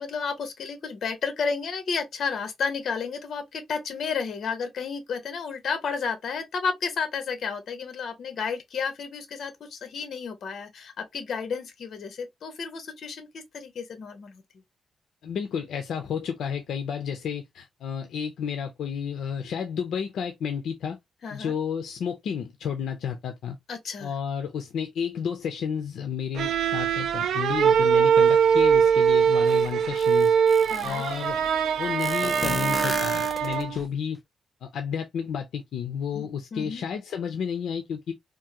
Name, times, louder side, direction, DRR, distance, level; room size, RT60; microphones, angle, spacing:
voice 1, 0.0-14.4 21.2-21.6 23.7-24.1 30.7-31.1 36.1-36.3 36.5-36.8, left 5 dB, 50° left, 1.0 m, -32 dB
voice 2, 15.2-21.0 21.3-23.6 24.0-30.3 30.8-31.5 31.8-34.2 34.6-38.1, left 7 dB, 75° left, 0.5 m, -31 dB
sound 1, 26.4-33.9, right 7 dB, 80° right, 0.3 m, -22 dB
sound 2, 29.5-29.6 30.0-31.1 32.0-33.8, left 2 dB, 10° left, 0.5 m, -33 dB
3.6 x 2.6 x 2.8 m
wide cardioid pair, 180°, 0 cm